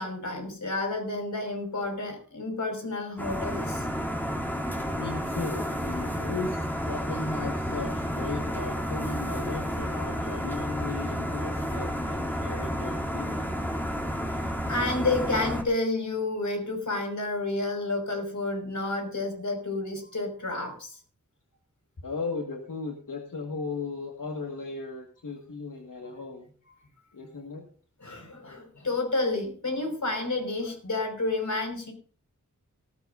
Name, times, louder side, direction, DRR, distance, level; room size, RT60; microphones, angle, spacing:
voice 1, 0.0-3.9 14.7-20.9 28.0-31.9, left 2 dB, 65° left, 3 dB, 5.5 m, -30 dB
sound 1, 3.2-15.6, equal, 5° left, 3.0 m, -31 dB
voice 2, 5.0-6.6 6.8-13.5 22.0-26.5 27.1-27.7, left 3 dB, 90° left, 2 dB, 1.9 m, -36 dB
18.5 x 14.5 x 2.7 m, 0.42 s
wide cardioid pair, 65°, 31 cm